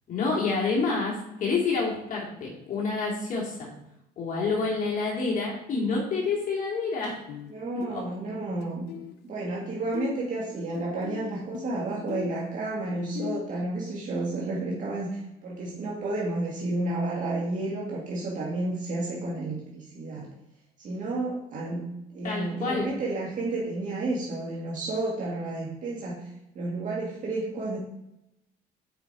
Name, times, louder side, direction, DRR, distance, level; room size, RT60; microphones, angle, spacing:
voice 1, 0.1-3.7 4.2-7.2 7.9-8.0 22.2-22.9, left 4 dB, 50° left, -3 dB, 2.3 m, -28 dB
sound 1, 5.7-5.9 7.3-7.5 7.8-9.6 9.9-13.4, left 12 dB, 80° left, 0.6 m, -40 dB
voice 2, 7.5-8.8 9.2-20.3 20.8-21.9 22.1-26.3 26.6-27.8, right 2 dB, 50° right, -4 dB, 2.0 m, -31 dB
7.0 x 5.1 x 4.7 m, 0.86 s
cardioid pair, 110°, 17 cm